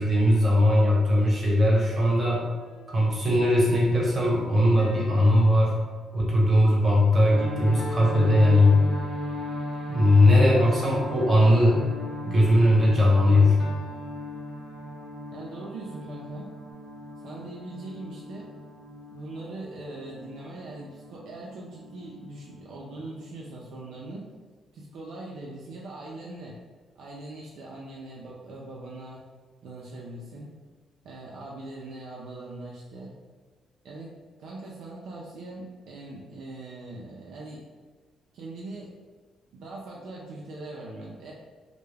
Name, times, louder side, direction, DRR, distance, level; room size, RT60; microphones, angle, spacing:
voice 1, 0.0-2.4 2.9-5.7 6.1-8.8 9.9-11.8 12.2-13.6, left 1 dB, 35° right, -4 dB, 0.9 m, -19 dB
sound 1, 2.6-3.4 4.8-6.6 7.8-9.4 10.5-12.2 13.6-15.2, left 3 dB, 60° left, 0.3 m, -43 dB
sound 2, 7.3-24.2, left 1 dB, 90° left, 0.9 m, -38 dB
voice 2, 15.3-16.5 17.2-18.5 19.1-24.3 24.7-26.6 27.0-29.2 29.6-30.5 31.0-33.1 33.8-34.1 34.4-37.6 38.3-38.9 39.5-41.3, right 2 dB, 75° right, -4 dB, 0.4 m, -41 dB
2.2 x 2.0 x 3.2 m, 1.4 s
cardioid pair, 90°, 0 cm